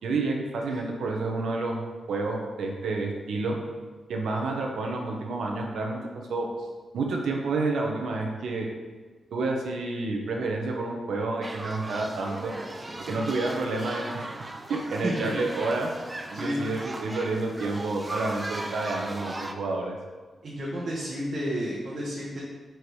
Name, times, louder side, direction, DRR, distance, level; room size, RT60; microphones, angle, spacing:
voice 1, 0.0-1.8 2.1-3.6 4.1-6.0 6.3-6.5 6.9-8.7 9.3-12.5 13.1-14.4 14.7-15.9 16.3-19.9, right 3 dB, 90° right, 1 dB, 1.0 m, -29 dB
sound 1, 11.4-19.5, right 1 dB, 15° right, 0.4 m, -38 dB
voice 2, 15.0-15.3 16.3-16.6 20.4-22.4, equal, 50° right, -6 dB, 1.2 m, -31 dB
5.1 x 4.6 x 4.8 m, 1.3 s
wide cardioid pair, 135°, 0 cm